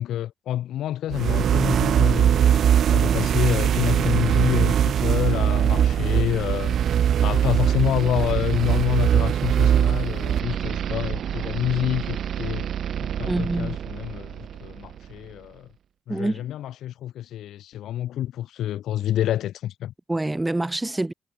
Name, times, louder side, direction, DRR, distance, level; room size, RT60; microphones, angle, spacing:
voice 1, 0.0-2.6 2.9-6.7 7.2-12.7 13.2-15.7 16.1-19.9, left 12 dB, 80° left, 1.6 m, -27 dB
sound 1, 1.1-15.0, right 9 dB, 65° right, 0.6 m, -22 dB
voice 2, 13.3-13.8 16.1-16.4 20.1-21.1, right 2 dB, 15° right, 3.2 m, -26 dB
cardioid pair, 90°, 0 cm